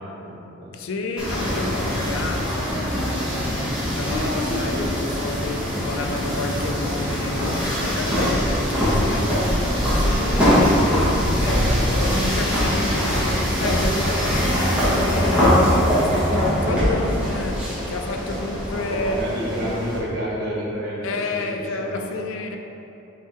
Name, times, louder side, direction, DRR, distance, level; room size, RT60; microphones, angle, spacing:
voice 1, 0.0-0.8 18.7-22.0, equal, 50° right, -6 dB, 1.2 m, -30 dB
voice 2, 0.7-3.7 3.9-19.2 19.6-19.8 21.0-22.6, left 3 dB, 65° left, 4 dB, 0.4 m, -30 dB
sound 1, 1.2-20.0, equal, 5° right, 1.5 m, -22 dB
6.1 x 3.6 x 4.4 m, 3.0 s
head